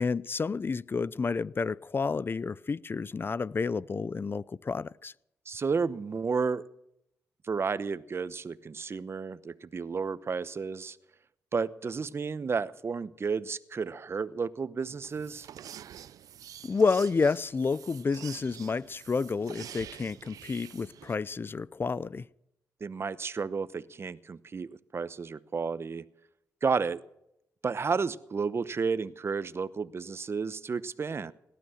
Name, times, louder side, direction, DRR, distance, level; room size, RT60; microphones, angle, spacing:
voice 1, 0.0-5.1 16.6-22.2, left 4 dB, 40° left, 0.5 m, -30 dB
voice 2, 5.5-6.6 7.4-11.0 11.5-15.5 22.8-26.0 26.6-27.0 27.6-31.3, right 5 dB, 45° right, 0.9 m, -32 dB
sound 1, 14.8-21.2, right 10 dB, 80° right, 0.5 m, -47 dB
18.0 x 12.5 x 6.4 m
cardioid pair, 60°, 6 cm